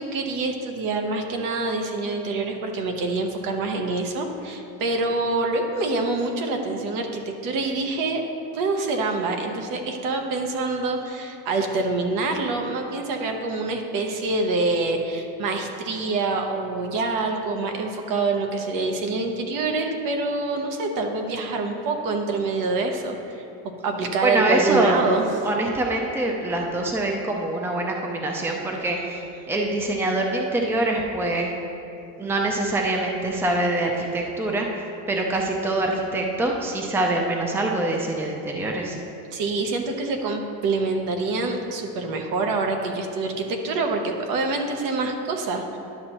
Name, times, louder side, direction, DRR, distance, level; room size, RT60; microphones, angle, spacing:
voice 1, 0.0-8.2 8.5-23.5 23.8-25.3 39.3-45.8, right 3 dB, 65° right, 4 dB, 1.0 m, -26 dB
voice 2, 24.2-25.1 25.4-31.5 32.2-34.8 35.1-39.0, right 2 dB, 5° right, 1 dB, 0.6 m, -24 dB
11.0 x 6.4 x 3.0 m, 2.9 s
cardioid pair, 140°, 35 cm